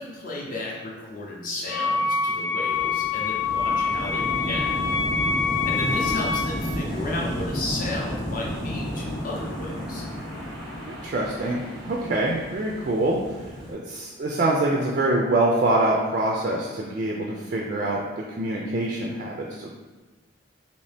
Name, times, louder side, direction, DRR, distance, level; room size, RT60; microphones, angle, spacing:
voice 1, 0.0-4.7 5.7-10.0 12.0-12.1, left 2 dB, 40° left, -3 dB, 0.6 m, -33 dB
Wind instrument woodwind instrument, 1.7-6.6, left 5 dB, 80° left, 1.1 m, -25 dB
sound 1, 2.7-13.7, equal, ahead, 0.7 m, -32 dB
voice 2, 10.9-13.2 13.7-19.7, right 2 dB, 40° right, -2 dB, 0.3 m, -25 dB
2.7 x 2.7 x 3.3 m, 1.3 s
head